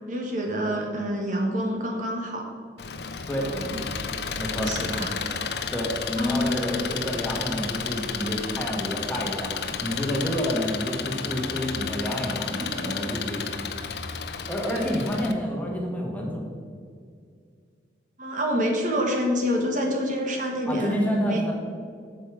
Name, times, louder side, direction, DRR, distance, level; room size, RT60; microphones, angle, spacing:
voice 1, 0.1-2.5 3.4-3.8 4.5-5.4 6.2-6.6 12.5-12.9 14.7-15.0 18.2-21.0 21.3-21.4, equal, 45° right, 1 dB, 1.2 m, -27 dB
Engine, 2.8-15.3, left 6 dB, 65° left, 0.6 m, -32 dB
voice 2, 4.4-4.7 5.7-13.4 14.5-16.5 20.7-21.5, equal, 10° left, -1 dB, 1.4 m, -29 dB
8.2 x 7.2 x 4.9 m, 2.1 s
head